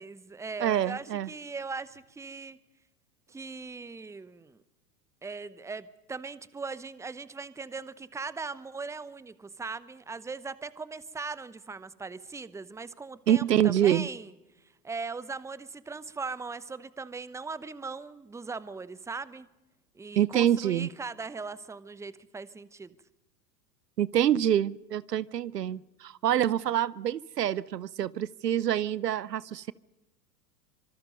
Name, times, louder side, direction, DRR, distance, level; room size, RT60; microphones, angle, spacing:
voice 1, 0.0-2.6 3.3-4.6 5.2-14.3 14.8-19.5 19.9-22.9 25.7-25.8, right 4 dB, 5° right, 0.9 m, -39 dB
voice 2, 0.6-1.3 13.3-14.1 20.2-20.9 24.0-29.7, right 10 dB, 80° right, 0.8 m, -26 dB
25.5 x 24.5 x 5.4 m
figure-of-eight pair, 95°, 48 cm